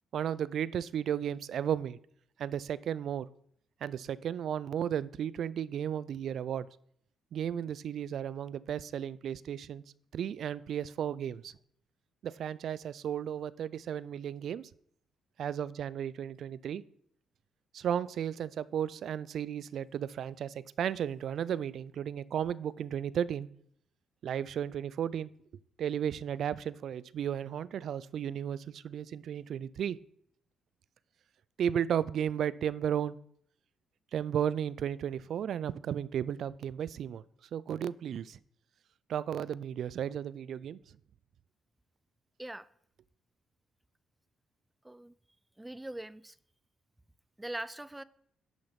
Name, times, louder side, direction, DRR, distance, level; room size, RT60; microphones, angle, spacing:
voice 1, 0.1-2.0 2.4-3.3 3.8-6.7 7.3-9.8 10.1-11.5 12.2-14.7 15.4-16.8 17.7-23.5 24.2-25.3 25.8-30.0 31.6-33.2 34.1-37.2 37.5-38.4 39.1-40.8, right 9 dB, 65° right, 0.4 m, -34 dB
voice 2, 45.6-46.3 47.4-48.0, right 1 dB, 10° right, 0.5 m, -41 dB
10.5 x 6.3 x 5.8 m
cardioid pair, 90°, 0 cm